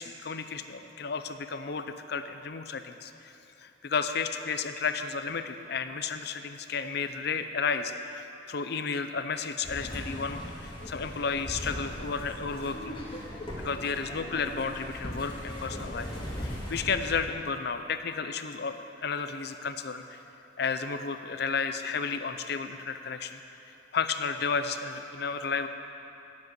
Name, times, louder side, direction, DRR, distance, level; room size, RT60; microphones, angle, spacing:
voice 1, 0.0-3.3 3.6-13.0 13.6-16.1 16.4-20.2 20.6-25.7, left 5 dB, 60° left, 9 dB, 0.6 m, -32 dB
sound 1, 9.6-17.3, equal, 25° left, 2.2 m, -39 dB
9.2 x 7.5 x 9.2 m, 2.9 s
head